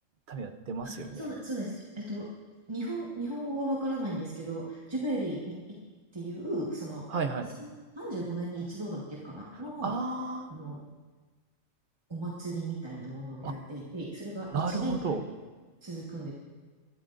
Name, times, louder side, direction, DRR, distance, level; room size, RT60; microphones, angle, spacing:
voice 1, 0.3-1.2 7.1-7.5 9.8-10.5 13.4-13.6 14.5-15.2, right 4 dB, 45° right, 7 dB, 0.9 m, -33 dB
voice 2, 0.8-2.3 2.7-5.8 6.1-7.1 7.5-7.7 7.9-9.9 10.5-10.8 12.1-15.1 15.8-16.3, right 1 dB, 20° right, -5 dB, 1.5 m, -36 dB
22.5 x 13.0 x 2.6 m, 1.4 s
omnidirectional pair, 1.3 m